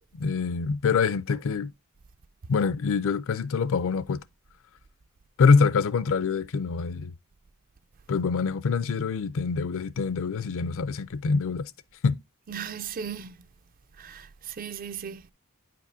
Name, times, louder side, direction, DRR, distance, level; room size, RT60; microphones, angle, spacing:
voice 1, 0.1-1.7 2.5-4.2 5.4-7.1 8.1-11.7 12.0-12.2, left 5 dB, 65° left, 0.5 m, -25 dB
voice 2, 12.5-13.4 14.0-15.3, right 7 dB, 40° right, 0.4 m, -37 dB
9.3 x 5.1 x 2.6 m
head